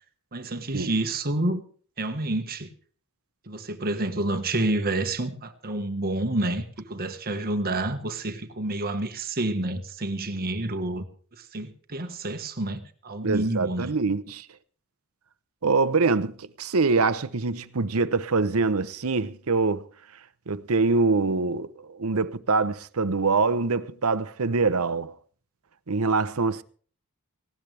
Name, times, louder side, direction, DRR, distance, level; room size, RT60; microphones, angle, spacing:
voice 1, 0.3-1.6 2.0-2.7 3.5-11.0 11.4-13.9, right 2 dB, 45° right, 1.4 m, -29 dB
voice 2, 13.2-14.5 15.6-19.9 20.5-25.1 25.9-26.6, right 4 dB, 75° right, 0.8 m, -24 dB
19.0 x 16.5 x 3.4 m
head